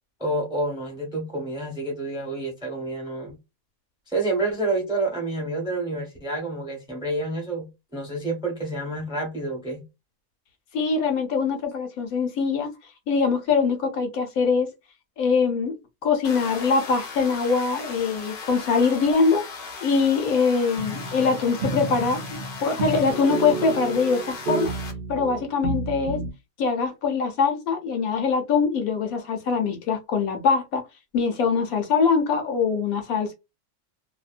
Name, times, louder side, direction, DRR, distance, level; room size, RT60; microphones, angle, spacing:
voice 1, 0.2-3.3 4.1-9.8, right 2 dB, 5° right, 0.7 m, -28 dB
voice 2, 10.7-12.7 13.1-14.7 15.2-15.7 16.0-24.7 25.1-26.2 26.6-30.8 31.1-33.3, left 5 dB, 70° left, 1.0 m, -23 dB
sound 1, 16.2-24.9, left 4 dB, 50° left, 0.6 m, -38 dB
sound 2, 20.8-26.3, right 3 dB, 60° right, 0.6 m, -31 dB
2.7 x 2.1 x 2.4 m
omnidirectional pair, 1.7 m